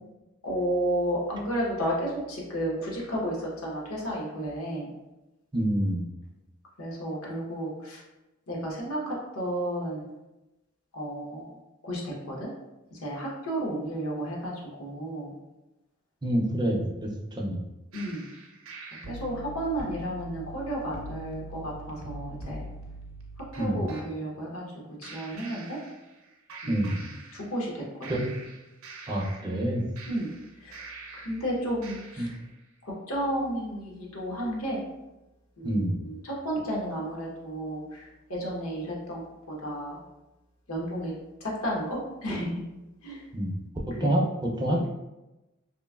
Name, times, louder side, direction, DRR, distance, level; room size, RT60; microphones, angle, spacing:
voice 1, 0.4-4.9 6.8-8.0 8.5-10.0 10.9-11.5 11.8-12.5 12.9-15.3 17.9-18.2 19.0-22.7 23.6-24.6 25.0-25.8 26.6-28.2 30.1-30.3 30.6-30.9 31.1-32.3 32.8-34.8 35.6-40.0 40.7-41.1 41.4-42.7 43.0-43.3 43.9-44.1 44.8-44.9, right 1 dB, 90° left, -3 dB, 0.8 m, -32 dB
voice 2, 5.5-6.1 16.2-17.6 23.6-23.9 26.7-27.0 28.1-28.3 29.1-29.9 32.2-32.3 35.6-36.0 43.3-43.5 43.9-44.9, right 1 dB, 20° right, -1 dB, 0.4 m, -27 dB
sound 1, 17.9-24.1 25.0-26.2 26.5-27.7 28.0-31.4 31.8-32.5, right 2 dB, 75° right, 0.5 m, -43 dB
3.0 x 2.4 x 2.3 m, 1.0 s
head